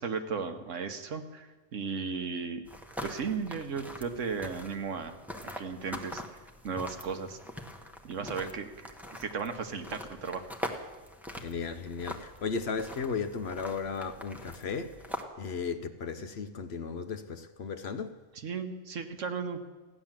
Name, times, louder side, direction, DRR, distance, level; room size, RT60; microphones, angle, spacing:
voice 1, 0.0-2.6 3.0-5.2 5.6-6.2 6.6-7.4 8.0-8.7 9.1-10.5 18.3-19.6, right 5 dB, 70° right, 1.4 m, -35 dB
sound 1, 2.6-15.2, equal, ahead, 0.9 m, -43 dB
voice 2, 11.4-14.9 15.4-18.1, left 5 dB, 60° left, 0.9 m, -35 dB
15.5 x 10.0 x 7.4 m
omnidirectional pair, 1.4 m